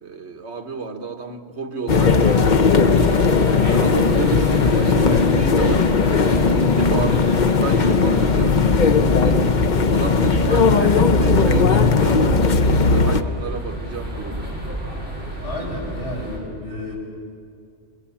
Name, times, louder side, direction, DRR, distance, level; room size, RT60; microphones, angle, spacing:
voice 1, 0.0-5.9 6.5-9.4 9.9-14.5, right 4 dB, 65° right, 6 dB, 1.6 m, -31 dB
sound 1, 1.9-13.2, left 4 dB, 45° left, 0.8 m, -17 dB
sound 2, 2.1-16.4, right 1 dB, 10° right, 6.5 m, -31 dB
voice 2, 6.8-7.2 15.4-17.0, left 1 dB, 70° left, -3 dB, 7.0 m, -32 dB
29.5 x 23.5 x 7.1 m, 2.3 s
omnidirectional pair, 1.3 m